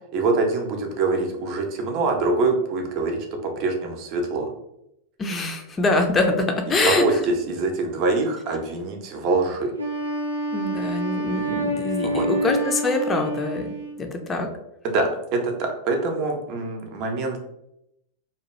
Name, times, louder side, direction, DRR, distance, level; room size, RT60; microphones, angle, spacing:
voice 1, 0.1-4.5 6.8-9.7 12.0-12.3 14.8-17.4, right 3 dB, 40° right, 3 dB, 0.6 m, -24 dB
voice 2, 5.2-7.1 10.5-13.7 14.0-14.5, left 3 dB, 20° left, 4 dB, 0.5 m, -24 dB
Wind instrument woodwind instrument, 9.8-14.1, right 2 dB, 90° right, 0.5 m, -28 dB
2.7 x 2.3 x 3.1 m, 0.82 s
figure-of-eight pair, 90°, 0 cm